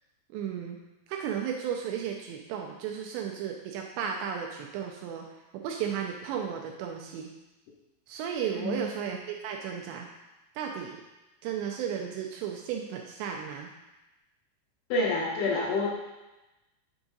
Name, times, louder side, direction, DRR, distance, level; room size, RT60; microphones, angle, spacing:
voice 1, 0.3-0.8 1.1-5.2 5.5-7.3 8.1-10.1 10.6-11.0 11.4-13.7, right 8 dB, 80° right, 2 dB, 2.6 m, -34 dB
voice 2, 14.9-15.9, left 2 dB, 80° left, -3 dB, 2.5 m, -27 dB
6.9 x 4.8 x 4.0 m, 1.0 s
omnidirectional pair, 5.3 m